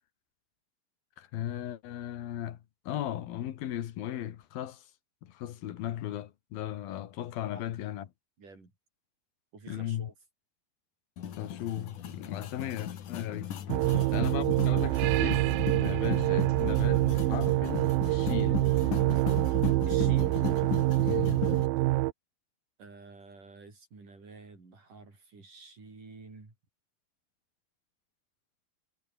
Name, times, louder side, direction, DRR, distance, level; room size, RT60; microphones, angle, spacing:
voice 1, 1.2-4.8 5.2-8.1 9.7-10.1 11.4-13.5 14.1-18.7 21.0-21.4, left 12 dB, 90° left, 3.5 m, -37 dB
voice 2, 8.4-8.7 9.5-10.1 13.8-14.2 19.9-20.4 22.8-26.5, right 3 dB, 65° right, 9.3 m, -49 dB
sound 1, 11.2-21.7, left 9 dB, 65° left, 3.4 m, -37 dB
sound 2, 13.7-22.1, right 19 dB, 90° right, 2.5 m, -26 dB
omnidirectional pair, 4.1 m